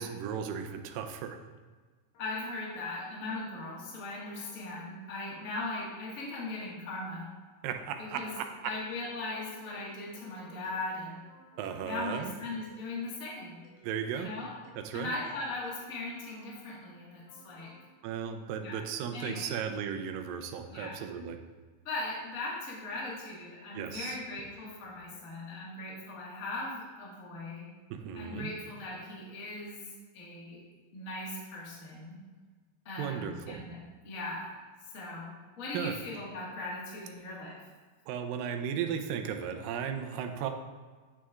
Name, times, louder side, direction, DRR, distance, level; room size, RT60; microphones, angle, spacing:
voice 1, 0.0-1.4 7.6-8.7 11.6-12.3 13.8-14.3 14.8-15.1 18.0-21.4 23.7-24.2 27.9-28.5 33.0-33.6 35.7-35.9 38.1-40.5, right 8 dB, 85° right, 6 dB, 2.3 m, -35 dB
sound 1, 2.1-2.9 3.3-3.9 4.1-4.9 5.3-5.9 6.2-13.2 13.6-16.9 17.3-17.9, left 1 dB, 75° left, 3.0 m, -58 dB
voice 2, 2.2-7.3 8.0-8.3 8.6-11.2 11.8-13.6 14.1-14.5 14.9-17.7 18.6-18.8 19.1-19.5 20.7-21.0 21.8-27.7 28.1-29.8 30.1-30.6 30.9-32.2 32.8-37.6, left 2 dB, 40° left, -5 dB, 1.2 m, -39 dB
9.6 x 6.2 x 2.4 m, 1.4 s
omnidirectional pair, 3.9 m